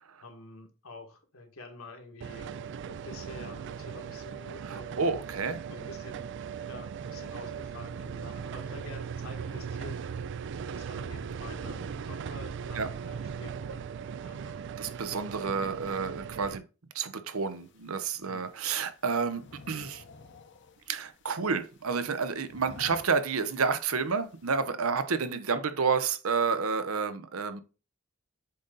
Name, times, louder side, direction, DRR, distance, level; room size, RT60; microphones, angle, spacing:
voice 1, 0.2-5.0 5.7-6.3 6.6-10.0 10.7-13.9 14.2-15.5 18.2-18.5 25.5-25.6, left 2 dB, 80° left, 1.8 m, -48 dB
sound 1, 2.2-16.6, right 7 dB, 60° right, 0.4 m, -38 dB
voice 2, 4.6-5.6 12.7-12.9 14.8-16.6 16.9-20.0 20.9-27.6, right 5 dB, 85° right, 0.8 m, -30 dB
sound 2, 17.3-24.6, left 4 dB, 60° left, 0.9 m, -54 dB
7.8 x 4.0 x 3.9 m
head